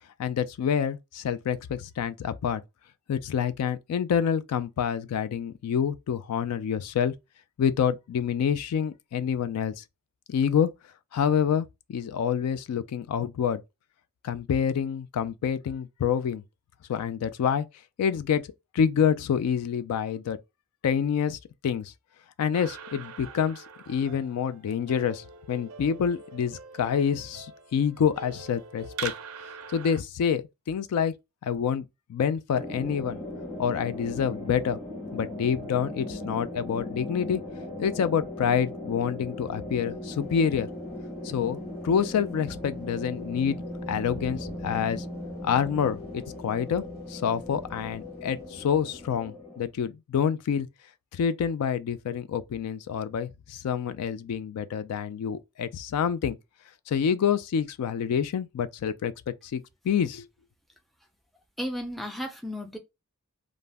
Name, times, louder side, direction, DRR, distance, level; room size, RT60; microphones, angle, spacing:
voice 1, 0.2-2.6 3.1-7.1 7.6-9.8 10.3-10.7 11.1-13.6 14.2-16.4 16.9-17.7 18.0-18.4 18.7-20.4 20.8-21.4 21.6-21.9 22.4-29.1 29.7-31.1 31.4-33.2 33.6-34.8 35.1-37.4 37.8-40.7 41.2-41.6 41.8-43.6 43.9-45.0 45.4-46.8 47.1-50.7 51.1-56.4 56.9-60.3, left 7 dB, 85° left, 0.3 m, -27 dB
sound 1, 22.5-30.0, right 6 dB, 65° right, 0.4 m, -43 dB
sound 2, 32.5-49.6, left 1 dB, 20° left, 1.0 m, -38 dB
sound 3, 39.8-49.2, right 1 dB, 45° left, 1.3 m, -50 dB
voice 2, 61.6-62.8, equal, ahead, 0.4 m, -34 dB
2.4 x 2.0 x 3.3 m
head